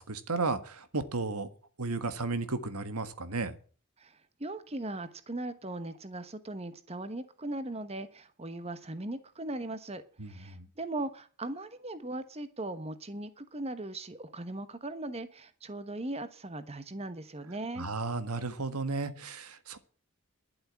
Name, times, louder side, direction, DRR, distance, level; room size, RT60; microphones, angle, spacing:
voice 1, 0.0-1.5 1.8-3.6 10.2-10.6 17.8-19.8, right 3 dB, 85° right, 11 dB, 1.6 m, -34 dB
voice 2, 4.0-10.0 10.3-17.9, right 2 dB, 30° right, 12 dB, 1.2 m, -39 dB
12.0 x 7.7 x 9.6 m, 0.40 s
head